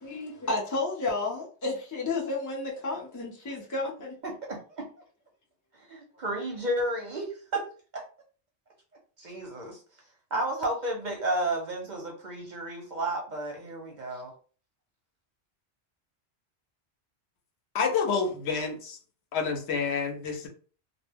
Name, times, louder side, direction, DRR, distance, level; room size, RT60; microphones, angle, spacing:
voice 1, 0.0-4.1, left 3 dB, 30° left, -3 dB, 0.3 m, -32 dB
voice 2, 4.2-4.6 5.9-7.6 7.9-8.0 9.2-9.8 10.3-14.3, right 1 dB, 50° right, 0 dB, 0.6 m, -32 dB
voice 3, 17.7-19.0 19.3-20.5, left 5 dB, 75° left, 2 dB, 0.9 m, -28 dB
2.1 x 2.1 x 3.4 m, 0.40 s
omnidirectional pair, 1.1 m